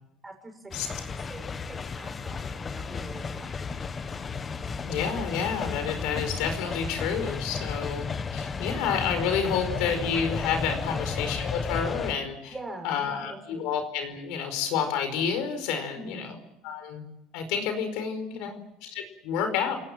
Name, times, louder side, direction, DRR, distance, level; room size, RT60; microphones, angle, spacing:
voice 1, 0.2-1.5 1.9-3.6 3.9-4.1 7.6-7.8 10.7-11.0 12.5-13.7 15.9-16.3 18.3-18.5, right 1 dB, 10° right, 3 dB, 6.5 m, -44 dB
sound 1, 0.7-12.1, left 5 dB, 25° left, 1.0 m, -33 dB
voice 2, 4.8-8.1 8.3-12.5 12.8-16.3 16.6-18.5 18.8-19.8, left 7 dB, 75° left, 7 dB, 4.9 m, -29 dB
29.5 x 19.0 x 7.6 m, 0.85 s
cardioid pair, 145°, 0 cm